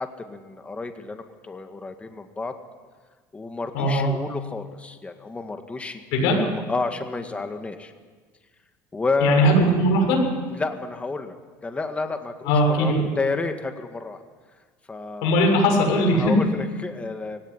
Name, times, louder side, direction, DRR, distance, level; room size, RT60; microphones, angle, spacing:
voice 1, 0.0-2.5 3.3-7.9 8.9-9.6 10.5-11.3 11.6-14.2 14.9-15.6 16.1-17.4, left 3 dB, 15° left, 6 dB, 2.0 m, -30 dB
voice 2, 3.7-4.1 6.1-6.4 9.2-10.2 12.5-13.0 15.2-16.3, equal, 80° left, 2 dB, 7.1 m, -19 dB
22.5 x 17.0 x 10.0 m, 1.5 s
cardioid pair, 120°, 8 cm